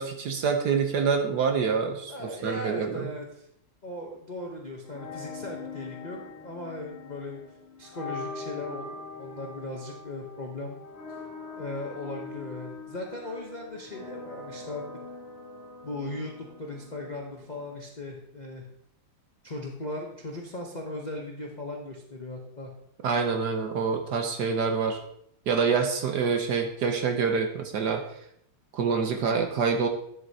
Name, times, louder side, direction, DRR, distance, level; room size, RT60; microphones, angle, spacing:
voice 1, 0.0-3.1 23.0-25.0 25.5-28.0 28.7-29.9, right 5 dB, 60° right, 4 dB, 1.2 m, -26 dB
voice 2, 2.1-3.5 3.8-7.4 7.8-10.8 11.6-14.8 15.8-18.7 19.4-22.7, left 2 dB, 50° left, 0 dB, 0.5 m, -38 dB
sound 1, 4.8-17.8, left 4 dB, 30° left, 1.6 m, -42 dB
10.0 x 7.8 x 2.8 m, 0.71 s
omnidirectional pair, 2.3 m